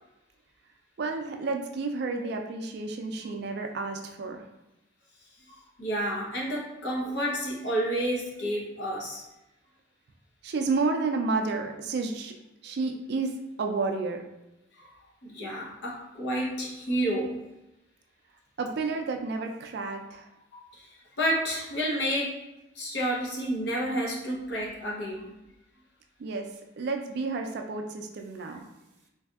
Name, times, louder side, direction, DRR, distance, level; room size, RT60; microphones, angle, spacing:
voice 1, 1.0-4.4 10.4-12.3 12.6-14.2 18.6-20.3 26.2-26.5 26.8-28.6, right 3 dB, 60° right, 4 dB, 0.4 m, -31 dB
voice 2, 5.8-9.2 14.8-14.9 15.2-17.5 20.7-20.9 21.2-22.5 22.7-25.2, equal, 65° left, -3 dB, 0.8 m, -30 dB
3.2 x 2.7 x 2.3 m, 0.93 s
head